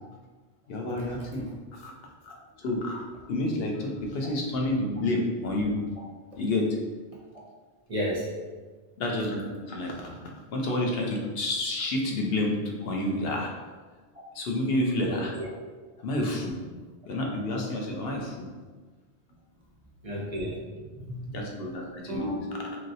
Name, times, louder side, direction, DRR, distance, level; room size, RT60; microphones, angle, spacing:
voice 1, 0.7-1.5 1.7-1.9 2.2-2.3 2.6-5.8 6.4-6.8 9.0-10.1 10.5-12.6 12.8-13.5 14.3-15.3 16.0-16.6 17.1-18.5 21.3-22.3, left 1 dB, 65° left, 0 dB, 0.8 m, -29 dB
voice 2, 7.9-8.3 15.0-15.5 20.0-21.3 22.1-22.8, equal, 45° right, -4 dB, 0.5 m, -33 dB
3.1 x 2.7 x 2.6 m, 1.4 s
omnidirectional pair, 1.1 m